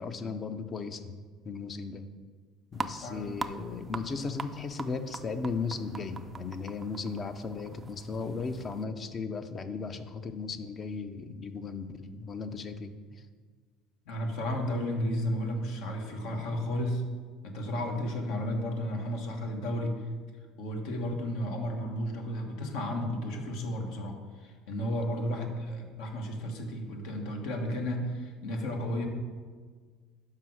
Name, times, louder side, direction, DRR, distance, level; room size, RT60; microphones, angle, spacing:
voice 1, 0.0-2.1 2.7-13.2 25.4-25.5, left 4 dB, 35° left, 9 dB, 0.6 m, -36 dB
sound 1, 2.7-8.8, right 4 dB, 25° right, 0.4 m, -42 dB
voice 2, 3.0-3.4 14.1-17.0 17.4-20.0 20.6-24.2 24.4-29.1, equal, 75° left, 3 dB, 1.2 m, -33 dB
5.7 x 4.8 x 6.2 m, 1.6 s
supercardioid pair, 85°, 0 cm